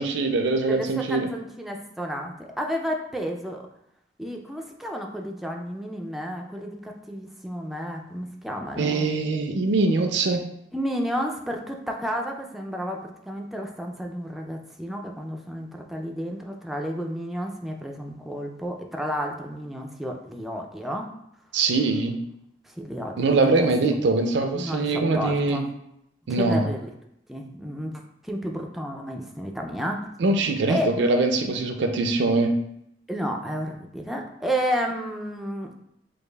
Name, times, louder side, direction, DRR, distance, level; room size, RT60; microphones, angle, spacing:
voice 1, 0.0-1.3 8.8-10.4 21.5-22.2 23.2-25.6 26.3-26.7 30.2-32.5, right 3 dB, 70° right, 5 dB, 0.4 m, -23 dB
voice 2, 0.7-3.6 4.2-9.1 10.7-21.1 22.6-23.7 24.5-25.7 26.3-26.9 27.3-30.1 30.7-30.9 33.1-35.8, equal, ahead, 1 dB, 0.3 m, -31 dB
4.8 x 2.4 x 2.2 m, 0.77 s
head